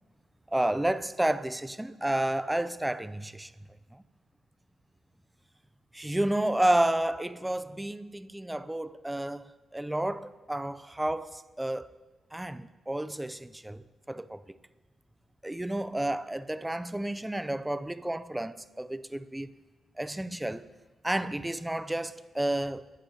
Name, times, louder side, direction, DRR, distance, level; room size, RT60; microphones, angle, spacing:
voice 1, 0.5-3.5 3.9-4.0 5.9-11.9 12.3-14.6 15.4-19.5 20.0-20.7 21.0-22.9, right 1 dB, 10° right, 0.4 m, -31 dB
22.0 x 11.5 x 2.8 m
cardioid pair, 130°, 0 cm